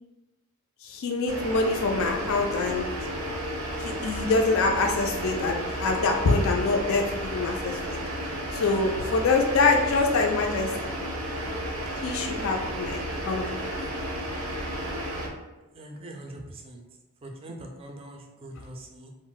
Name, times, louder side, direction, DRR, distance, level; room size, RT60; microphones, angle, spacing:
voice 1, 0.8-2.9 3.8-8.0 8.5-10.9 12.0-13.0 13.3-13.7, left 3 dB, 70° left, 2 dB, 0.3 m, -25 dB
sound 1, 1.3-15.3, equal, 85° right, 0.5 m, -32 dB
voice 2, 15.7-16.8 17.2-19.1, right 1 dB, 25° right, 2 dB, 0.3 m, -42 dB
2.3 x 2.0 x 3.8 m, 1.1 s
head